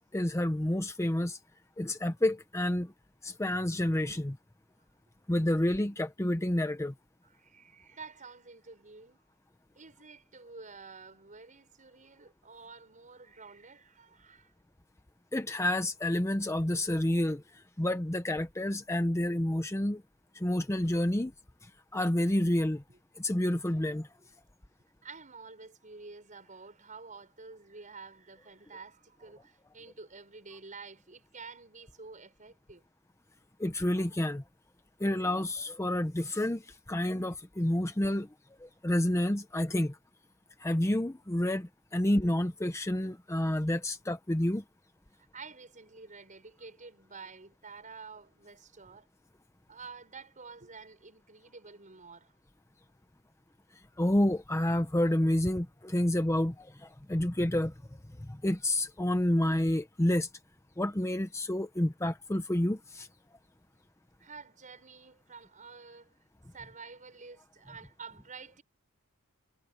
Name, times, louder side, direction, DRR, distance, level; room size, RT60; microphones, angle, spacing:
voice 1, 0.1-1.4 1.8-2.9 3.2-4.4 5.3-6.9 15.3-20.0 20.3-21.3 21.6-22.8 23.2-24.1 33.6-34.4 35.0-38.3 38.6-40.0 40.6-44.6 54.0-57.7 58.2-60.3 60.8-63.1, left 1 dB, 15° left, 0.7 m, -29 dB
voice 2, 7.2-9.2 9.7-14.5 22.9-23.0 25.0-32.8 45.1-49.1 49.7-52.3 64.2-66.2 66.5-68.6, right 4 dB, 35° right, 5.9 m, -49 dB
head